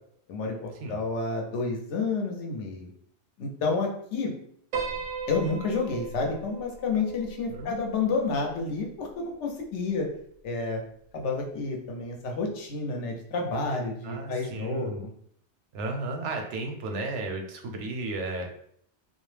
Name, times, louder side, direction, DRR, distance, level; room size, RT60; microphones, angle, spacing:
voice 1, 0.3-2.9 3.4-4.3 5.3-10.1 10.4-10.8 11.1-15.1, left 3 dB, 85° left, 1 dB, 0.9 m, -30 dB
Piano, 4.7-9.1, right 5 dB, 60° right, 0.6 m, -38 dB
voice 2, 14.0-15.0 15.7-18.5, right 2 dB, 85° right, 3 dB, 0.9 m, -34 dB
2.3 x 2.0 x 3.1 m, 0.66 s
omnidirectional pair, 1.2 m